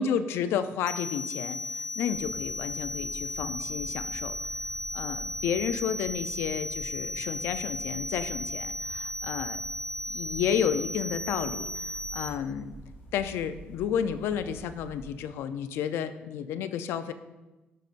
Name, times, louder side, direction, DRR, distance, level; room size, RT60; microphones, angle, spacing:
voice 1, 0.0-4.4 4.9-9.6 10.1-12.7 13.1-17.1, left 8 dB, 85° left, 11 dB, 0.4 m, -31 dB
sound 1, 0.9-12.3, left 1 dB, 20° left, 0.5 m, -35 dB
sound 2, 2.1-15.2, right 1 dB, 55° left, 1.8 m, -48 dB
12.0 x 5.2 x 2.5 m, 1.1 s
cardioid pair, 160°, 4 cm